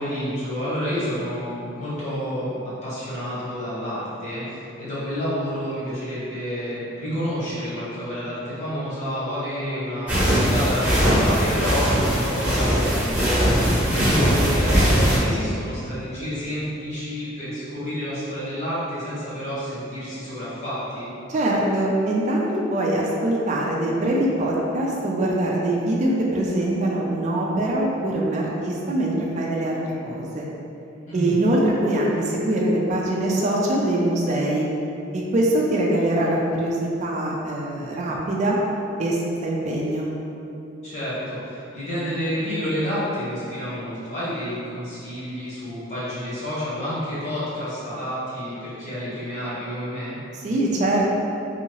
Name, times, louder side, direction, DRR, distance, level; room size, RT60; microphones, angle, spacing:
voice 1, 0.0-21.1 31.1-31.4 40.8-50.2, equal, 40° left, -10 dB, 1.1 m, -29 dB
sound 1, 10.1-15.2, equal, 10° right, 0.9 m, -20 dB
voice 2, 21.3-29.8 30.1-30.5 31.1-34.7 35.1-38.6 39.0-40.1 50.4-51.0, right 1 dB, 40° right, -3 dB, 0.3 m, -23 dB
2.7 x 2.7 x 2.9 m, 2.8 s
head